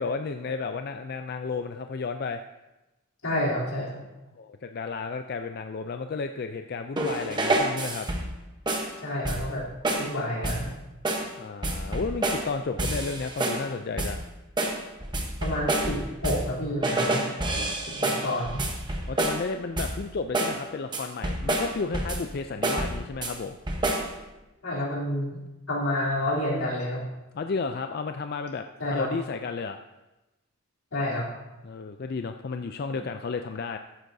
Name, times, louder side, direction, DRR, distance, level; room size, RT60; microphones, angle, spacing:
voice 1, 0.0-2.4 4.4-8.1 11.4-14.2 17.6-17.8 19.1-23.6 27.3-29.8 31.6-33.8, left 4 dB, 45° left, 7 dB, 0.3 m, -32 dB
voice 2, 3.2-4.0 9.0-9.6 10.0-10.7 15.4-17.2 17.9-18.6 24.6-25.4 25.7-27.0 28.8-29.1 30.9-31.2, left 1 dB, 80° left, -5 dB, 3.3 m, -29 dB
sound 1, 7.0-8.4 8.7-8.9 9.2-9.6 9.8-10.1 10.4-10.7 11.0-11.3 11.6-12.5 12.8-13.7 14.0-14.2 14.6-16.5 16.8-19.5 19.8-20.1 20.3-20.6 20.9-22.3 22.6-23.3 23.7-24.1, right 2 dB, 20° right, 1.0 m, -28 dB
14.0 x 10.0 x 2.7 m, 1.0 s
head